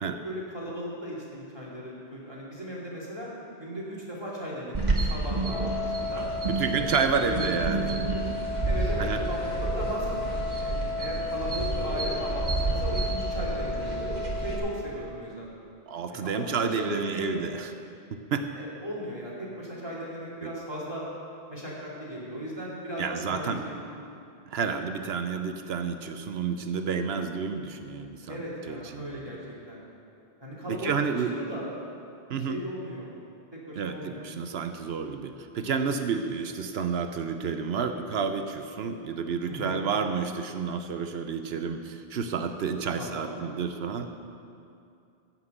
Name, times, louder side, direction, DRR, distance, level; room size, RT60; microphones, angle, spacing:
voice 1, 0.2-3.3 3.6-6.3 6.8-6.9 7.2-8.3 8.6-10.2 10.6-14.1 14.4-15.5 16.1-17.4 18.5-21.0 21.5-23.8 28.3-29.8 30.4-31.7 32.4-33.1 33.5-34.3 39.5-39.7 43.0-43.3, equal, 25° right, -6 dB, 2.5 m, -37 dB
sound 1, 4.7-14.6, right 3 dB, 45° right, 1.7 m, -30 dB
Wind instrument woodwind instrument, 5.4-14.8, left 3 dB, 25° left, 2.9 m, -34 dB
voice 2, 6.2-8.0 9.0-9.2 15.9-17.7 18.3-18.4 20.4-20.5 23.0-23.6 24.5-29.2 30.7-31.3 32.3-32.6 33.8-44.2, right 6 dB, 75° right, 7 dB, 1.0 m, -30 dB
15.5 x 5.9 x 7.9 m, 2.5 s
omnidirectional pair, 1.0 m